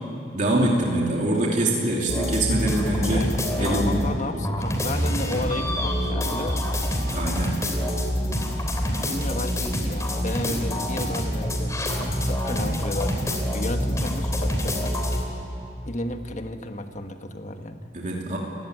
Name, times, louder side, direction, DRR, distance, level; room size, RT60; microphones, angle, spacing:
voice 1, 0.3-3.3 3.6-4.3 7.1-7.6 12.5-12.7 17.9-18.4, right 1 dB, 45° right, -2 dB, 2.8 m, -24 dB
sound 1, 2.1-4.2 4.4-15.2, equal, 20° left, 3.0 m, -26 dB
voice 2, 3.1-6.7 9.1-15.0 15.9-17.9, left 1 dB, 45° left, 6 dB, 1.5 m, -33 dB
30.0 x 16.0 x 9.6 m, 2.9 s
head